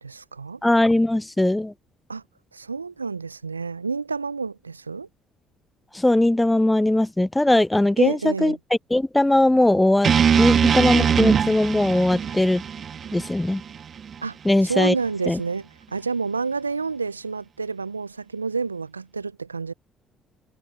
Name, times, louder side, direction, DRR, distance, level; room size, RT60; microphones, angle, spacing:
voice 1, 0.0-0.6 2.1-2.2 2.5-5.1 8.0-8.6 14.2-19.7, right 4 dB, 85° right, 0.7 m, -29 dB
voice 2, 0.6-1.7 5.9-8.6 8.9-12.6 13.1-13.6 14.4-14.9 15.3-15.4, left 1 dB, 10° left, 0.6 m, -20 dB
sound 1, 10.0-14.2, right 7 dB, 45° right, 1.7 m, -22 dB
figure-of-eight pair, 50°, 0 cm